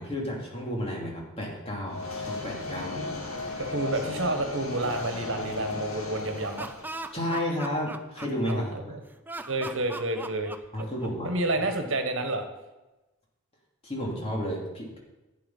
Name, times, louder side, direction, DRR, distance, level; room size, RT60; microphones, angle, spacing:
voice 1, 0.0-3.0 7.1-8.7 10.7-11.3 13.8-15.0, equal, 25° left, -2 dB, 2.8 m, -32 dB
sound 1, 1.9-7.1, left 3 dB, 75° left, 2.5 m, -35 dB
voice 2, 3.6-6.7 8.5-9.0 9.5-10.5 11.2-12.5, right 2 dB, 60° right, 6 dB, 1.5 m, -29 dB
Laughter, 6.3-8.8 9.3-11.3, right 2 dB, 10° right, 0.4 m, -39 dB
11.5 x 8.8 x 5.6 m, 1.1 s
head